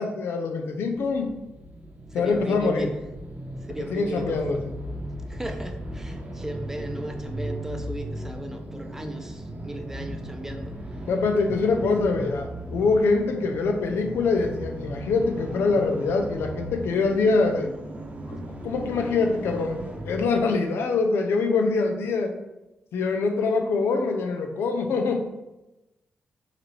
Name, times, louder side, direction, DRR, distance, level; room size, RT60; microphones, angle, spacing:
voice 1, 0.0-1.4 2.1-2.9 3.8-4.6 11.1-17.7 18.3-22.3 22.9-25.3, left 4 dB, 85° left, 5 dB, 0.5 m, -24 dB
sound 1, 0.9-20.4, equal, 40° right, 0.8 m, -37 dB
voice 2, 2.1-2.9 3.7-4.7 5.3-10.7, right 1 dB, 10° right, 5 dB, 0.6 m, -35 dB
4.8 x 3.0 x 3.2 m, 0.98 s
cardioid pair, 60°, 4 cm